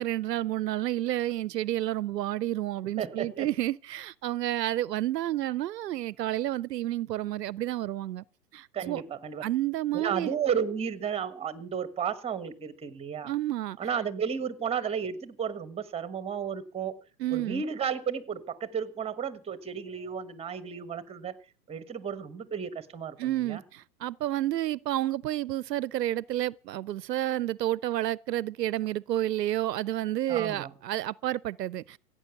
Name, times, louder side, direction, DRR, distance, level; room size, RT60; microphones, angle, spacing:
voice 1, 0.0-8.2 8.5-9.0 9.4-10.3 13.2-13.8 17.2-17.6 23.2-32.0, right 14 dB, 75° right, 0.6 m, -30 dB
voice 2, 3.0-3.5 8.7-9.4 9.9-13.3 13.8-17.0 17.3-21.3 21.7-23.6 30.3-30.7, right 7 dB, 10° right, 1.3 m, -33 dB
16.5 x 9.0 x 7.0 m
hypercardioid pair, 115°, 49 cm